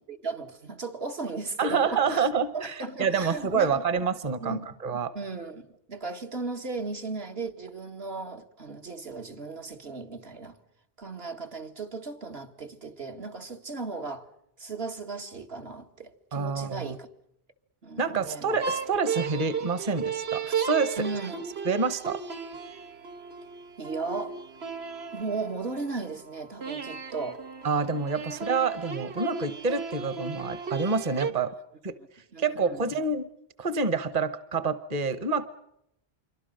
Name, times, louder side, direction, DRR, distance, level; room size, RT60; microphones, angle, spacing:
voice 1, 0.0-3.8 4.4-4.7 5.1-10.6 11.0-14.3 14.6-17.1 17.8-18.6 21.0-21.4 23.8-24.4 25.1-27.4 32.3-32.9, right 3 dB, 75° right, 2.1 m, -36 dB
voice 2, 1.6-5.1 16.3-17.0 18.0-21.0 21.7-22.2 27.6-31.5 31.8-32.0 32.4-33.3 33.6-35.5, right 5 dB, 40° right, 1.1 m, -27 dB
sound 1, 18.6-26.0 26.6-31.3, right 6 dB, 90° right, 1.6 m, -35 dB
27.0 x 24.0 x 6.5 m
omnidirectional pair, 1.0 m